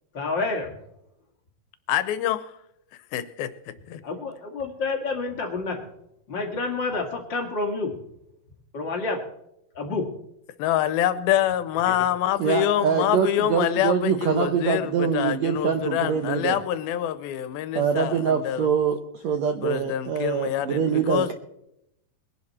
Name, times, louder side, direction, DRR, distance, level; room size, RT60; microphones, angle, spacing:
voice 1, 0.1-0.8 4.0-5.8 6.3-7.9 8.7-9.2 9.7-10.1, left 3 dB, 35° left, 1 dB, 2.3 m, -28 dB
voice 2, 1.9-2.5 3.1-3.5 3.9-4.0 10.6-18.7 19.6-21.3, left 11 dB, 85° left, 13 dB, 2.7 m, -26 dB
voice 3, 12.4-16.6 17.7-21.3, right 7 dB, 75° right, 7 dB, 1.7 m, -24 dB
21.5 x 11.0 x 4.3 m, 0.80 s
omnidirectional pair, 4.2 m